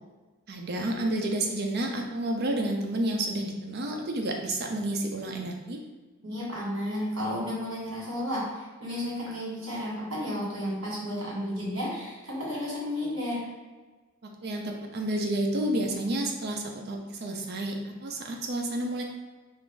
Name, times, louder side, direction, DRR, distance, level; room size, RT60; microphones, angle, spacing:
voice 1, 0.5-5.8 14.2-19.0, right 1 dB, 50° right, 2 dB, 0.4 m, -30 dB
voice 2, 6.2-13.4, left 1 dB, 65° right, -6 dB, 1.4 m, -32 dB
2.5 x 2.4 x 3.7 m, 1.3 s
head